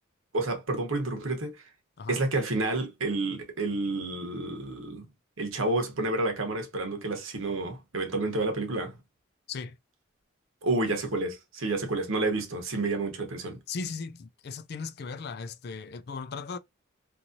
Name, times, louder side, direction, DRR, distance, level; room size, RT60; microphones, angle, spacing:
voice 1, 0.3-1.7 2.1-5.1 5.4-9.0 10.6-13.6, right 2 dB, 75° right, 1.0 m, -30 dB
voice 2, 13.7-16.6, left 5 dB, 50° left, 0.3 m, -37 dB
3.0 x 2.7 x 2.6 m
head